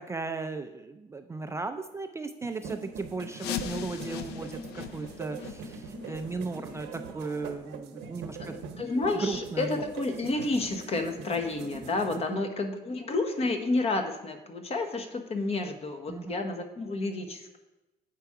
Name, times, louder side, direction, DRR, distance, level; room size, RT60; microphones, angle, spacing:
voice 1, 0.0-8.6 8.9-9.8 12.1-12.4 16.1-16.3, right 3 dB, 15° right, 7 dB, 0.3 m, -36 dB
sound 1, 2.4-12.2, right 5 dB, 85° right, 0.9 m, -42 dB
sound 2, 3.3-8.9 9.3-9.4 9.9-10.0 10.6-10.7 11.3-11.4, left 9 dB, 75° left, 0.5 m, -41 dB
voice 2, 8.4-17.6, left 2 dB, 35° left, 6 dB, 1.0 m, -30 dB
7.8 x 4.6 x 4.7 m, 1.0 s
cardioid pair, 110°, 17 cm